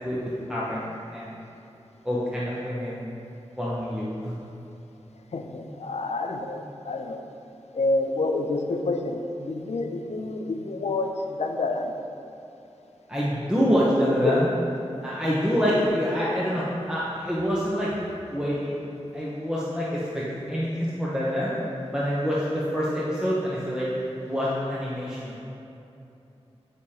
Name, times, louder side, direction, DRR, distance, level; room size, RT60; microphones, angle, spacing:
voice 1, 0.0-1.4 2.0-3.1 3.6-4.3 13.1-14.5 15.0-17.9 18.3-18.8 19.1-21.5 21.9-23.9 24.2-25.4, equal, 5° right, -7 dB, 0.9 m, -26 dB
voice 2, 5.3-7.2 7.7-11.9 14.2-14.3 15.7-15.9, left 3 dB, 75° left, 4 dB, 0.5 m, -28 dB
9.0 x 4.9 x 2.9 m, 2.8 s
wide cardioid pair, 75°, 11 cm